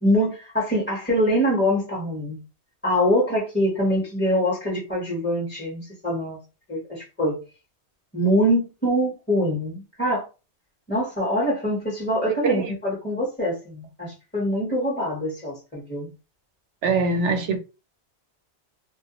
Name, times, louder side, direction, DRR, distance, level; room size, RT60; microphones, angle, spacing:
voice 1, 0.0-2.4 2.8-6.4 6.7-7.4 8.1-10.3 10.9-16.1, equal, 10° left, 0.7 m, -24 dB
voice 2, 12.4-12.7 16.8-17.6, right 4 dB, 85° right, 0.9 m, -22 dB
2.2 x 2.1 x 2.8 m
omnidirectional pair, 1.2 m